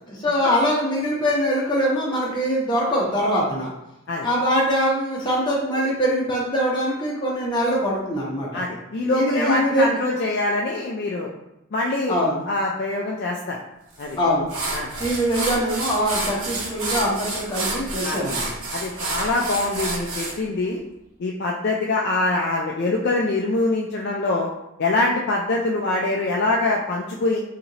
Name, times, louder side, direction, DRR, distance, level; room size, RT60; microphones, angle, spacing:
voice 1, 0.1-3.7 4.2-8.6 9.0-10.0 12.1-12.4 14.1-14.5 15.0-18.5, equal, 20° left, -6 dB, 1.0 m, -23 dB
voice 2, 8.5-11.3 11.7-12.2 12.5-13.6 14.0-14.2 14.7-14.9 18.0-18.2 18.7-20.8 21.2-24.5 24.8-27.4, left 2 dB, 50° left, -2 dB, 0.3 m, -24 dB
sound 1, 14.0-14.1 14.5-20.3, right 2 dB, 75° right, 0.9 m, -29 dB
4.1 x 2.9 x 2.7 m, 0.88 s
head